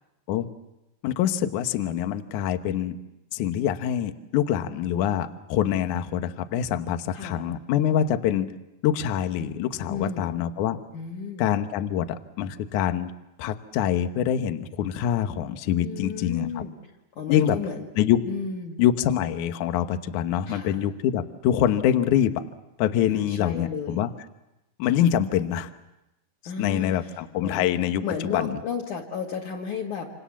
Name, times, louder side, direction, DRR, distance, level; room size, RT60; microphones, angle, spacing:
voice 1, 1.0-3.0 3.3-8.5 8.8-10.8 11.4-13.1 13.4-16.6 17.3-17.6 18.0-18.2 18.8-22.4 22.8-24.1 24.8-25.7 26.6-28.0 28.3-28.6, left 10 dB, 80° left, 9 dB, 1.7 m, -25 dB
voice 2, 9.9-10.3 10.9-11.5 15.8-16.7 17.2-17.8 18.3-18.8 20.5-20.8 23.1-24.0 26.4-27.1 27.4-27.6 28.0-30.1, left 6 dB, 50° left, -1 dB, 2.9 m, -33 dB
28.0 x 27.5 x 7.2 m, 0.96 s
omnidirectional pair, 5.2 m